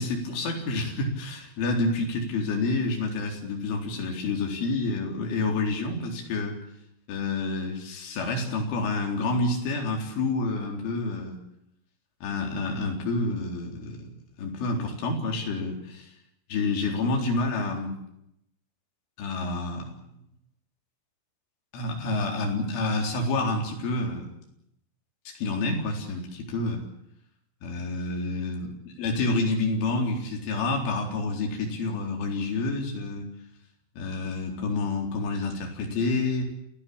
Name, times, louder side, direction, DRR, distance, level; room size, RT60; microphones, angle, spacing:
voice 1, 0.0-6.6 7.1-11.4 12.2-14.1 14.4-16.1 16.5-18.0 19.2-19.9 21.7-24.3 25.3-26.8 27.6-28.7 29.0-33.3 34.0-36.4, left 2 dB, 70° left, 1 dB, 6.5 m, -28 dB
28.5 x 16.5 x 8.7 m, 0.78 s
omnidirectional pair, 5.8 m